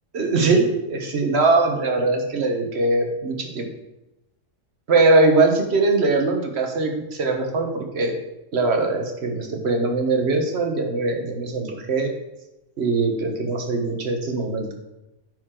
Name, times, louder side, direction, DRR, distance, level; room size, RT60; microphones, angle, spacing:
voice 1, 0.1-3.7 4.9-8.1 8.5-12.1 12.8-14.7, right 3 dB, 55° right, 3 dB, 1.3 m, -21 dB
9.3 x 4.8 x 3.7 m, 0.97 s
omnidirectional pair, 1.3 m